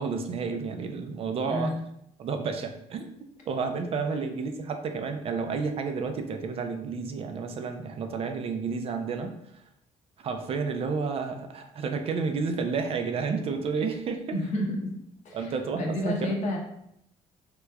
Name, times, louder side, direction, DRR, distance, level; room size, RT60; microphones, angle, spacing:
voice 1, 0.0-1.8 2.2-3.0 3.5-9.6 10.2-14.4 15.3-16.3, right 5 dB, 45° right, 6 dB, 0.4 m, -31 dB
voice 2, 1.5-1.8 4.0-4.2 14.3-15.0 15.2-16.6, left 1 dB, 60° left, 0 dB, 0.8 m, -31 dB
3.3 x 2.9 x 2.3 m, 0.75 s
cardioid pair, 105°, 14 cm